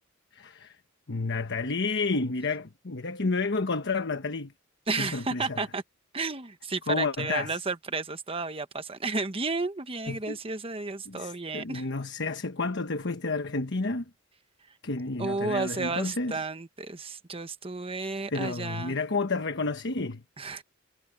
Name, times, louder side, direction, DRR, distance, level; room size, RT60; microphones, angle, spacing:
voice 1, 0.3-0.8 1.1-4.5 5.0-5.6 6.9-7.6 10.1-10.4 11.0-14.0 14.8-16.4 18.3-20.2, left 3 dB, 60° left, 1.2 m, -30 dB
voice 2, 4.9-5.8 6.1-11.9 15.2-19.0 20.4-20.6, right 3 dB, 30° right, 1.2 m, -32 dB
head